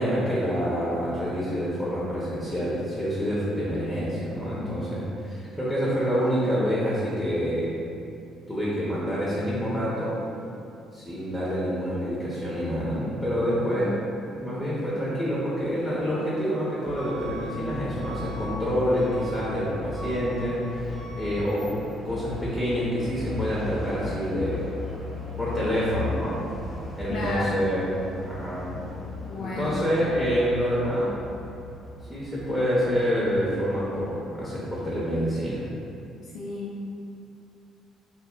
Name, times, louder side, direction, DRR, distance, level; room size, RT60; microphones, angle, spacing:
voice 1, 0.0-7.7 8.5-10.2 10.9-14.0 14.3-21.7 22.0-24.7 25.4-26.4 26.9-27.9 28.2-28.6 29.4-31.1 32.1-35.6, equal, 5° left, -8 dB, 0.7 m, -27 dB
Truck / Alarm, 16.9-34.1, left 2 dB, 40° left, 0.7 m, -37 dB
voice 2, 27.1-27.6 29.2-29.8 36.3-36.8, left 2 dB, 70° left, -7 dB, 0.4 m, -32 dB
2.1 x 2.0 x 3.6 m, 2.6 s
hypercardioid pair, 55°, 0 cm